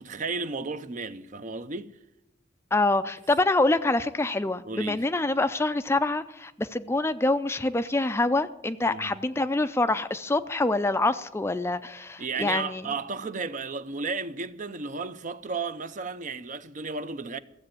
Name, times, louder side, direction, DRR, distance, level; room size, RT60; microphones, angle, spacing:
voice 1, 0.0-1.9 4.6-5.1 8.9-9.1 12.2-17.4, right 4 dB, 40° right, 0.6 m, -33 dB
voice 2, 2.7-12.8, left 2 dB, 15° left, 0.4 m, -26 dB
15.0 x 7.7 x 8.9 m
head